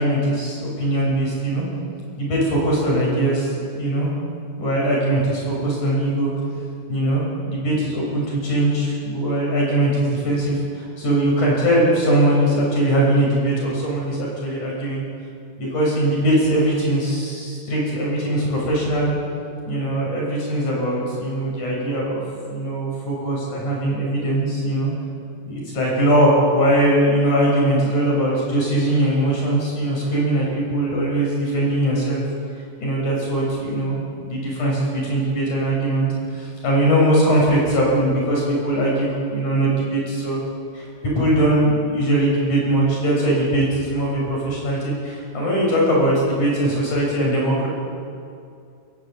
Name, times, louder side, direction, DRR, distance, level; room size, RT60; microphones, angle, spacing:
voice 1, 0.0-1.6 2.2-4.1 4.6-6.3 6.9-15.0 15.6-19.1 19.6-22.2 22.5-24.9 25.5-32.2 32.8-40.4 40.7-47.7, right 1 dB, 45° left, -3 dB, 8.0 m, -21 dB
29.0 x 15.5 x 8.2 m, 2.4 s
omnidirectional pair, 4.8 m